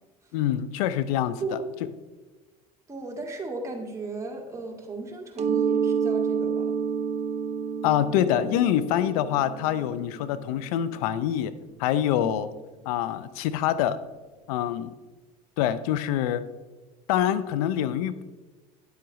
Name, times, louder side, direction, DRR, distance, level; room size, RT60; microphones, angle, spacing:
voice 1, 0.3-1.4 7.8-11.5 11.8-12.5 12.9-14.0 14.5-14.9 15.6-16.5 17.1-18.2, left 11 dB, 75° left, 14 dB, 0.5 m, -25 dB
voice 2, 2.9-6.8 12.2-12.4, right 3 dB, 15° right, 0 dB, 2.1 m, -36 dB
Mallet percussion, 5.4-10.9, right 6 dB, 35° right, 0.7 m, -29 dB
10.0 x 7.9 x 3.1 m, 1.2 s
hypercardioid pair, 80°, 19 cm